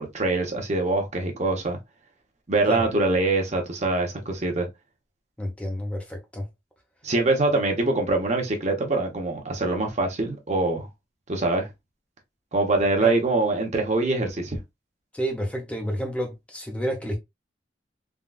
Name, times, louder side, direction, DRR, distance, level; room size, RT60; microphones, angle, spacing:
voice 1, 0.0-1.8 2.5-4.7 7.0-10.9 11.3-11.7 12.5-14.6, right 2 dB, 40° right, 0.8 m, -24 dB
voice 2, 5.4-6.5 13.0-13.1 15.1-17.2, equal, 5° left, 0.6 m, -29 dB
3.6 x 2.3 x 2.3 m
head